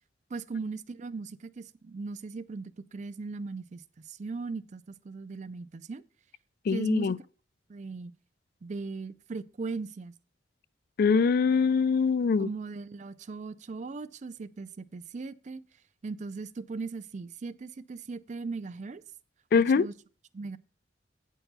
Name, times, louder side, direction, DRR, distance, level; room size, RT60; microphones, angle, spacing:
voice 1, 0.3-6.0 6.7-7.1 7.7-8.1 8.6-10.1 12.4-15.6 16.0-19.0 19.5-19.9 20.3-20.6, right 4 dB, 40° right, 0.4 m, -38 dB
voice 2, 6.7-7.2 11.0-12.5 19.5-19.9, left 5 dB, 55° left, 0.3 m, -23 dB
8.9 x 4.6 x 6.6 m
head